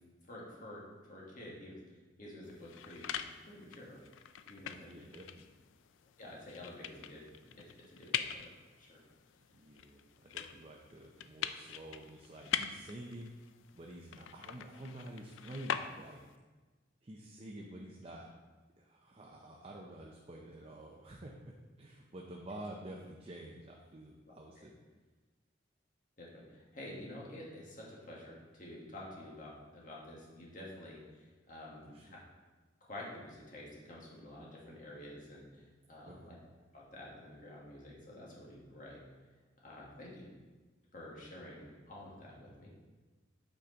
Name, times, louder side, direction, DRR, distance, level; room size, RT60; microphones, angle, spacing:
voice 1, 0.3-1.8 2.2-4.0 4.4-4.9 6.2-8.5 8.8-9.0 24.6-24.7 26.2-31.9 32.8-36.4 36.7-39.0 39.6-40.3 40.9-42.7, left 1 dB, 45° left, -4 dB, 1.7 m, -49 dB
sound 1, 2.4-16.4, left 9 dB, 90° left, 0.4 m, -43 dB
voice 2, 4.7-5.5 9.5-13.3 13.7-16.2 17.0-18.3 18.8-24.8 31.9-32.2 36.1-36.3 42.4-42.5, right 1 dB, 30° right, -1 dB, 0.6 m, -49 dB
8.4 x 5.0 x 3.9 m, 1.3 s
head